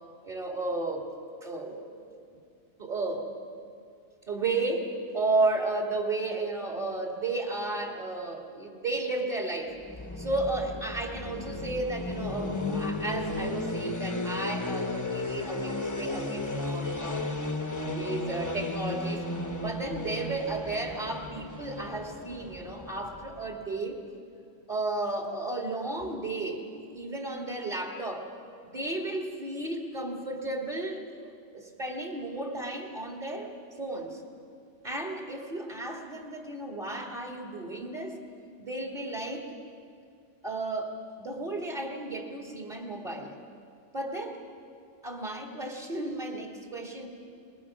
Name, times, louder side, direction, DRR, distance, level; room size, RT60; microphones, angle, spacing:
voice 1, 0.2-1.1 1.4-2.2 2.8-3.4 4.3-9.8 10.2-17.4 17.9-19.3 19.6-24.0 24.7-28.3 28.6-33.5 33.8-34.2 34.8-38.2 38.6-39.5 40.4-43.3 43.9-44.4 45.0-47.1, right 2 dB, 40° right, 1 dB, 2.4 m, -33 dB
sound 1, 9.8-23.7, left 2 dB, 15° left, 0.9 m, -34 dB
27.0 x 21.0 x 6.1 m, 2.4 s
omnidirectional pair, 1.2 m